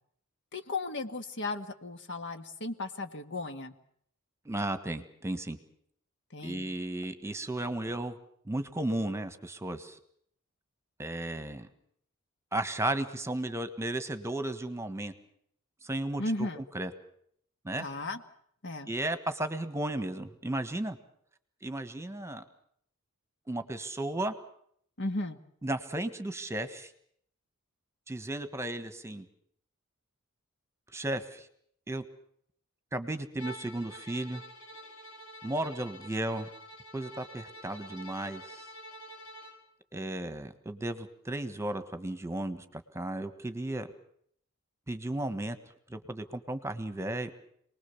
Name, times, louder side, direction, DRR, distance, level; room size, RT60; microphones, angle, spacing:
voice 1, 0.5-3.7 6.3-6.7 16.2-16.6 17.8-18.2 18.6-18.9 25.0-25.4, left 2 dB, 55° left, 8 dB, 1.8 m, -35 dB
voice 2, 4.4-5.6 6.4-8.2 8.5-10.0 11.0-11.7 12.5-15.1 15.8-16.9 17.6-17.8 18.9-21.0 21.6-22.4 23.5-24.3 25.6-26.9 28.1-29.3 30.9-31.5 31.9-32.0 32.9-34.4 35.4-36.5 36.9-38.7 39.9-43.9 44.9-45.6 45.9-47.3, right 1 dB, 15° right, 10 dB, 1.4 m, -34 dB
Bowed string instrument, 33.4-39.6, equal, 85° left, 6.0 m, -47 dB
27.5 x 20.0 x 7.1 m, 0.66 s
head